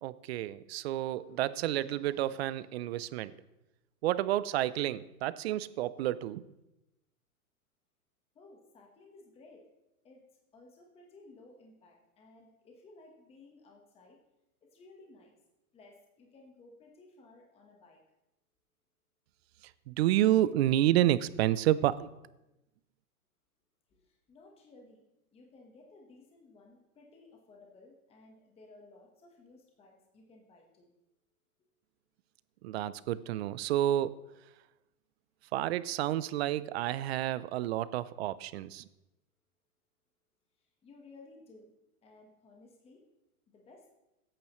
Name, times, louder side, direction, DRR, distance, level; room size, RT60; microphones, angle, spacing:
voice 1, 0.0-3.3 4.0-6.4 19.9-22.1 32.6-34.2 35.5-38.8, right 13 dB, 45° right, 18 dB, 0.4 m, -30 dB
voice 2, 8.3-9.6 10.0-10.2 10.5-14.2 14.7-15.3 15.7-18.0 23.9-25.0 25.3-30.9 40.6-41.7 42.0-43.0 43.5-43.9, left 2 dB, 15° left, 0 dB, 1.2 m, -57 dB
16.5 x 8.9 x 3.0 m, 0.94 s
hypercardioid pair, 145°, 44 cm